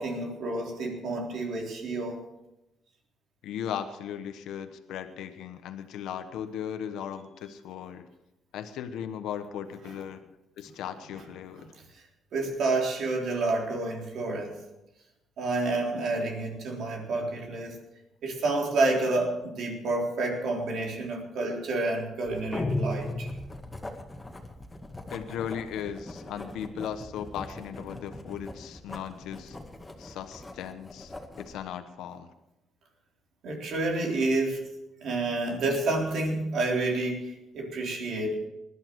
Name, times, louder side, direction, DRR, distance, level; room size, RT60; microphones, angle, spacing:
voice 1, 0.0-2.2 12.3-14.6 15.4-17.8 18.2-23.3 33.4-34.6 35.0-38.5, right 2 dB, 70° right, 0 dB, 3.8 m, -29 dB
voice 2, 3.4-8.0 8.5-10.2 10.6-11.6 16.0-16.1 25.1-29.6 30.0-32.3, left 9 dB, 85° left, 9 dB, 1.1 m, -37 dB
Writing, 22.3-31.6, left 1 dB, 15° left, 2.0 m, -44 dB
sound 1, 22.5-24.0, left 2 dB, 30° left, 1.6 m, -31 dB
20.0 x 11.5 x 4.7 m, 0.91 s
cardioid pair, 90°, 0 cm